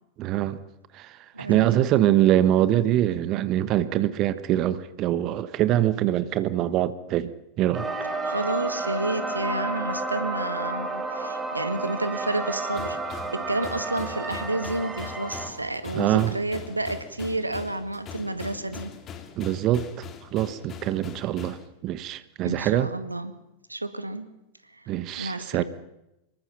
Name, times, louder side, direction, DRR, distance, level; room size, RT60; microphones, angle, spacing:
voice 1, 0.2-0.6 0.9-7.9 15.9-16.3 19.4-20.0 20.3-21.6 21.8-22.9 24.9-25.6, right 12 dB, 35° right, 1.2 m, -24 dB
voice 2, 1.3-1.8 8.2-19.0 22.4-23.3 23.7-24.3 25.2-25.6, right 2 dB, 85° right, 2.0 m, -30 dB
sound 1, 7.7-15.5, right 3 dB, 10° right, 4.1 m, -31 dB
sound 2, 12.7-21.7, left 7 dB, 30° left, 2.6 m, -42 dB
25.5 x 23.0 x 5.8 m
figure-of-eight pair, 90°, 0 cm